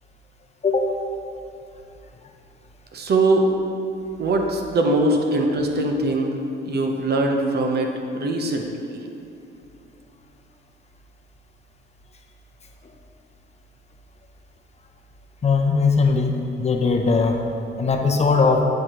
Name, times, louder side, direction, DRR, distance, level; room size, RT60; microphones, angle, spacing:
voice 1, 0.6-1.0 5.1-5.2 12.8-12.9 15.4-17.4 17.8-18.7, left 4 dB, 35° left, 3 dB, 0.6 m, -20 dB
voice 2, 2.9-3.5 4.2-6.4 6.6-9.0, right 2 dB, 55° right, 3 dB, 0.8 m, -22 dB
9.8 x 4.8 x 3.0 m, 2.6 s
cardioid pair, 90°, 20 cm